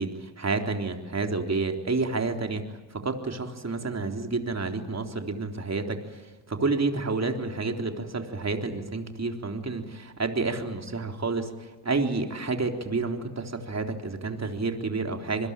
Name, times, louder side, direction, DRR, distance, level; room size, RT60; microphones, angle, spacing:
voice 1, 0.0-15.5, right 3 dB, 30° right, 5 dB, 3.7 m, -30 dB
27.0 x 21.5 x 9.0 m, 1.2 s
cardioid pair, 75°, 50 cm